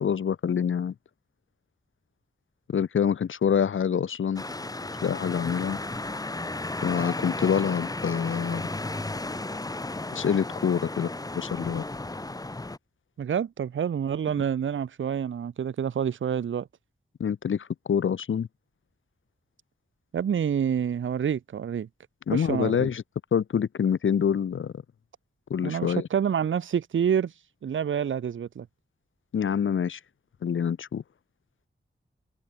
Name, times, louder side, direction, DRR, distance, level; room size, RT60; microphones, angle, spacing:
voice 1, 0.0-0.9 2.7-4.4 5.0-5.8 6.8-8.6 10.1-11.8 17.2-18.5 22.3-23.0 23.3-24.7 25.5-26.1 29.3-30.0 30.4-31.0, left 7 dB, 75° left, 0.7 m, -26 dB
sound 1, 4.4-12.8, left 2 dB, 20° left, 0.9 m, -34 dB
voice 2, 13.2-16.7 20.1-21.9 22.3-22.9 25.6-27.3 27.6-28.7, right 8 dB, 70° right, 0.6 m, -27 dB
wide cardioid pair, 95°, 20 cm